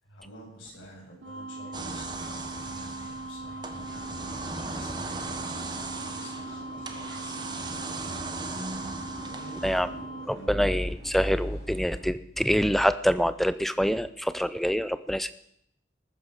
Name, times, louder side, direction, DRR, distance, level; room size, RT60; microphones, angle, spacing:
voice 1, 0.0-10.6, right 1 dB, 85° left, -2 dB, 8.0 m, -48 dB
sound 1, 1.2-10.3, right 2 dB, 80° right, 1.5 m, -40 dB
sound 2, 1.7-10.0, right 3 dB, 25° right, 1.2 m, -38 dB
sound 3, 3.7-12.0, equal, 50° left, 4.2 m, -48 dB
voice 2, 10.3-15.3, equal, ahead, 14 dB, 0.5 m, -25 dB
20.0 x 9.4 x 6.6 m, 0.73 s
head